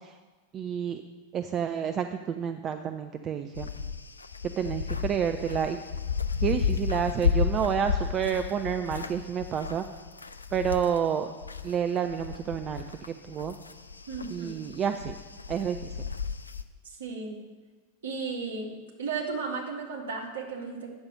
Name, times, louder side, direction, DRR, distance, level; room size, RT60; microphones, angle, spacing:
voice 1, 0.5-1.0 1.3-2.1 2.4-3.7 4.6-5.8 6.4-9.8 10.5-11.3 11.6-12.8 13.3-13.5 14.3-15.1 15.5-15.8, right 8 dB, 30° right, 8 dB, 0.4 m, -29 dB
sound 1, 3.5-11.7 12.1-16.6, left 6 dB, 80° left, 0.4 m, -33 dB
voice 2, 14.1-14.6 16.8-17.4 18.0-18.7 19.0-20.9, right 4 dB, 60° right, 0 dB, 1.8 m, -34 dB
8.7 x 6.6 x 6.2 m, 1.3 s
figure-of-eight pair, 90°, 0 cm